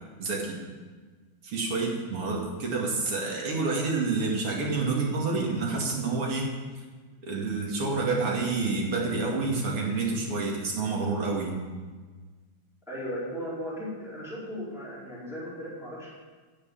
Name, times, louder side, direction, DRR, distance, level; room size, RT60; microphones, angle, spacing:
voice 1, 0.2-0.6 1.4-6.5 7.2-11.6, right 3 dB, 85° right, -1 dB, 3.3 m, -28 dB
voice 2, 12.9-16.1, equal, ahead, -8 dB, 4.3 m, -36 dB
16.0 x 6.6 x 7.3 m, 1.4 s
omnidirectional pair, 2.4 m